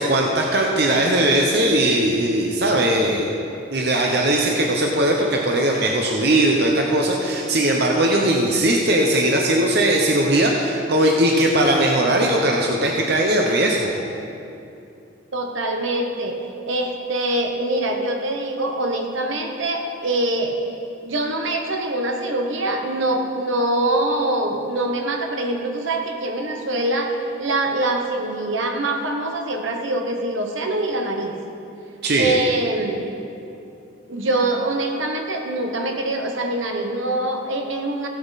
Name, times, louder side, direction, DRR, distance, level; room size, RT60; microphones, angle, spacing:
voice 1, 0.0-3.3 3.7-13.9 32.0-32.3, right 1 dB, 50° right, 0 dB, 0.9 m, -19 dB
voice 2, 15.3-16.4 16.7-20.6 21.0-27.1 27.4-31.3 32.2-33.1 34.1-38.1, right 2 dB, 75° right, 3 dB, 1.2 m, -24 dB
15.5 x 8.5 x 4.1 m, 2.7 s
head